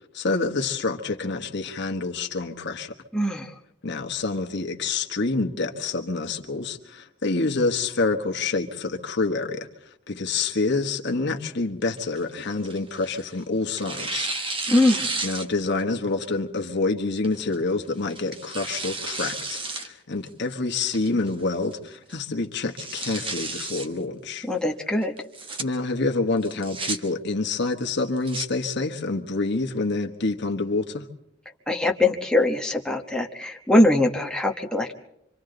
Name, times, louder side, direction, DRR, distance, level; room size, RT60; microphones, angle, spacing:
voice 1, 0.1-2.9 3.8-9.7 10.1-14.3 15.2-24.5 25.6-31.0, left 3 dB, 60° left, 1.3 m, -27 dB
voice 2, 3.1-3.5 14.7-15.1 24.5-25.1 31.7-34.9, left 1 dB, 5° left, 1.1 m, -22 dB
Tearing, 12.0-13.3 13.8-15.8 16.2-16.3 17.2-17.5 18.1-19.9 20.3-20.4 20.9-21.3 21.7-21.8 22.1-22.2 22.6-23.9 25.2-25.6 26.4-27.0 28.0-28.5, right 3 dB, 25° right, 1.3 m, -32 dB
27.0 x 25.0 x 3.9 m
head